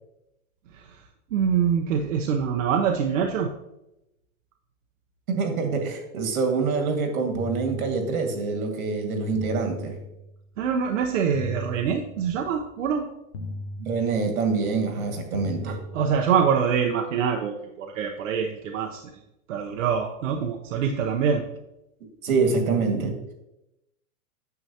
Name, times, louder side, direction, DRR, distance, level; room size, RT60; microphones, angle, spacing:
voice 1, 1.3-3.5 10.6-13.1 15.6-19.0 19.5-21.4, right 7 dB, 60° right, 2 dB, 0.8 m, -25 dB
voice 2, 5.3-10.0 13.8-15.8 22.2-23.2, right 4 dB, 80° right, 4 dB, 2.0 m, -25 dB
sound 1, 7.3-8.5 9.3-10.5 11.3-12.5 13.3-14.5 15.3-16.5, left 2 dB, 50° left, 0.9 m, -37 dB
9.4 x 6.8 x 2.8 m, 0.90 s
supercardioid pair, 165°, 43 cm